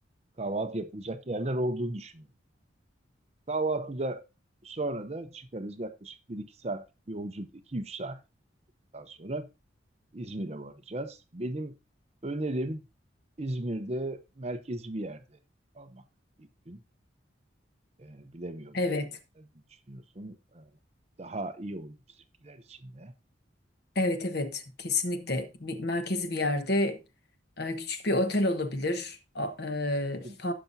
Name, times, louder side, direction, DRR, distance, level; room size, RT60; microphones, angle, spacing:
voice 1, 0.4-2.2 3.5-4.2 4.6-8.2 8.9-9.5 10.1-11.7 12.2-12.8 13.4-15.2 15.8-16.0 16.4-16.8 18.0-18.8 19.9-20.6 21.2-22.0 22.4-23.1 30.2-30.4, right 2 dB, 30° right, 0.7 m, -35 dB
voice 2, 18.7-19.1 23.9-27.0 27.6-30.5, left 2 dB, 55° left, 1.1 m, -29 dB
16.0 x 5.8 x 2.7 m
head